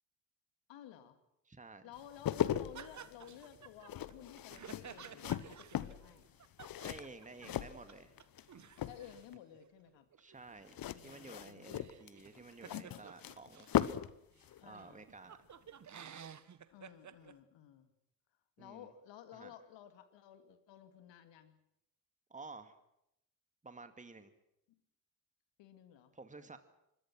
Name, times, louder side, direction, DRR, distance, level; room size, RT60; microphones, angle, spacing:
voice 1, 0.7-1.2 1.8-6.3 8.8-10.1 10.8-11.9 14.6-15.1 16.7-17.9 18.6-21.6 25.6-26.1, left 10 dB, 60° left, 9 dB, 2.6 m, -55 dB
voice 2, 1.5-1.9 6.8-8.1 10.2-13.7 14.6-15.4 18.6-18.9 19.3-19.5 22.3-22.8 23.6-24.3 26.1-26.6, right 3 dB, 15° right, 9 dB, 2.2 m, -52 dB
sound 1, 2.0-8.4 8.7-9.3 10.7-14.2 14.4-14.6, left 11 dB, 45° left, 1.1 m, -38 dB
sound 2, 2.7-7.6 7.9-8.0 8.2-13.8 14.4-14.5 14.7-17.3, right 8 dB, 35° right, 1.4 m, -54 dB
26.0 x 22.0 x 6.3 m, 0.82 s
hypercardioid pair, 50°, 48 cm